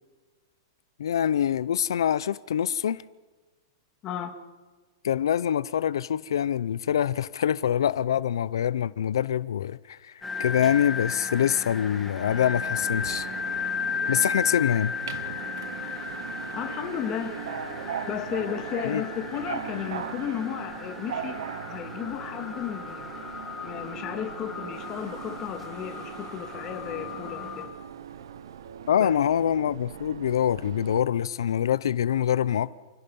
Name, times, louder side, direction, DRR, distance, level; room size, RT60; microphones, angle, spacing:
voice 1, 1.0-3.0 5.0-13.3 14.1-14.9 18.8-19.0 28.9-32.7, left 9 dB, 90° left, 0.6 m, -25 dB
voice 2, 4.0-4.4 16.5-17.4 18.1-21.4 21.7-23.2 23.6-27.7 28.9-29.1, left 9 dB, 20° left, 1.9 m, -34 dB
circular saw at a construction site, 10.2-27.6, left 5 dB, 5° left, 1.9 m, -35 dB
Subway metro underground, 12.2-31.0, right 8 dB, 75° right, 1.1 m, -40 dB
29.0 x 16.5 x 5.4 m
supercardioid pair, 175°, 2 cm